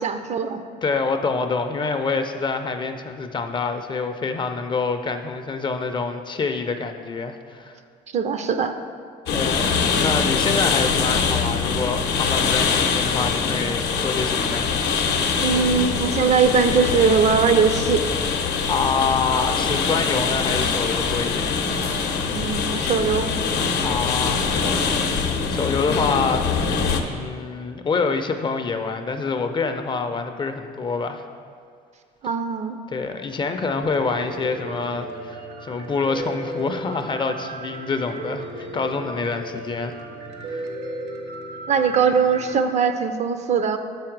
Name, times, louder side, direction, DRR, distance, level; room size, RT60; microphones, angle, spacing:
voice 1, 0.0-0.6 8.1-8.7 15.4-18.1 22.3-23.3 32.2-32.8 41.7-43.8, right 6 dB, 45° right, 9 dB, 0.4 m, -20 dB
voice 2, 0.8-7.8 9.3-14.6 18.5-21.6 23.8-24.9 25.2-26.8 27.1-31.2 32.9-39.9 40.5-40.6, left 4 dB, 30° left, 7 dB, 0.4 m, -26 dB
sound 1, 9.3-27.0, left 5 dB, 75° left, 0.7 m, -23 dB
Piano, 33.8-42.5, right 2 dB, 75° right, 0.9 m, -35 dB
7.0 x 4.8 x 4.6 m, 2.1 s
cardioid pair, 110°, 17 cm